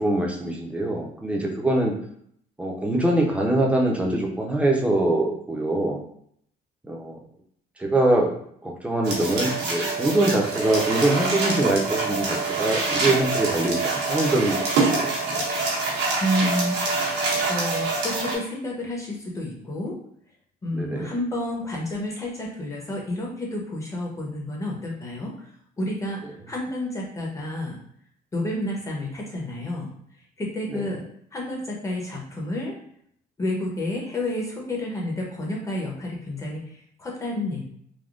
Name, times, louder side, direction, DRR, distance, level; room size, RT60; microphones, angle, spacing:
voice 1, 0.0-1.9 2.6-6.0 6.8-7.2 7.8-8.3 8.6-15.5 20.7-21.1 30.7-30.9, right 1 dB, 5° right, -1 dB, 0.6 m, -23 dB
sound 1, 9.0-18.4, right 3 dB, 90° right, 1.0 m, -25 dB
voice 2, 16.2-17.1 17.5-20.0 20.6-25.5 25.8-26.2 26.5-27.8 28.3-29.9 30.4-31.0 31.3-32.8 33.4-37.6, left 1 dB, 20° left, -2 dB, 0.9 m, -30 dB
3.5 x 2.2 x 2.4 m, 0.67 s
cardioid pair, 110°, 17 cm